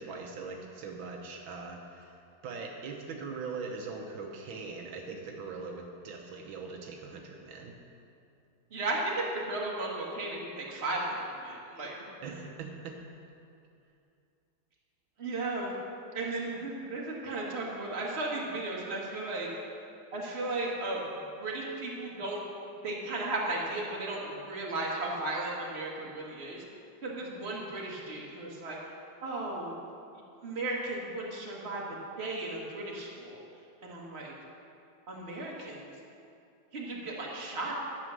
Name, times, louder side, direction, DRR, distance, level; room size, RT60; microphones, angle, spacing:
voice 1, 0.0-2.1 2.4-7.7 12.2-13.0 35.6-35.7, right 4 dB, 75° right, 1 dB, 1.6 m, -41 dB
voice 2, 8.7-12.0 15.2-15.7 16.1-19.5 20.1-21.0 21.4-22.4 22.8-26.6 27.0-28.8 29.2-29.7 30.4-33.4 33.8-34.3 35.1-35.9 36.7-37.7, right 2 dB, 35° right, -3 dB, 1.8 m, -35 dB
11.0 x 7.5 x 6.3 m, 2.6 s
omnidirectional pair, 2.2 m